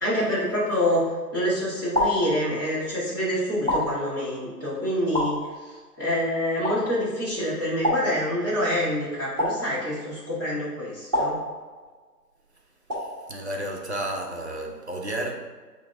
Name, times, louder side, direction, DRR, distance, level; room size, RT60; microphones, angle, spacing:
voice 1, 0.0-1.0 1.3-5.3 5.6-11.4, left 1 dB, 15° left, 0.8 m, -26 dB
sound 1, 1.1-1.3 1.9-2.9 3.7-4.5 5.1-6.0 6.6-7.3 7.8-8.7 9.4-10.3 11.1-12.1 12.9-13.5, left 1 dB, 10° right, 1.0 m, -29 dB
voice 2, 13.0-15.3, right 1 dB, 45° right, 0.5 m, -32 dB
5.5 x 2.1 x 3.4 m
figure-of-eight pair, 160°, 48 cm